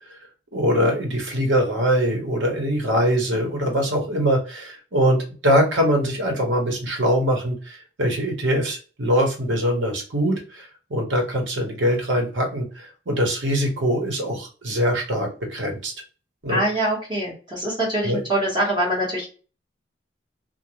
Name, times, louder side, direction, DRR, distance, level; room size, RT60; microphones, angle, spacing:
voice 1, 0.5-15.9 16.4-16.6 18.0-18.2, equal, 85° right, 1 dB, 1.0 m, -23 dB
voice 2, 16.5-19.3, right 1 dB, 25° right, -4 dB, 1.2 m, -24 dB
2.5 x 2.2 x 2.9 m, 0.37 s
head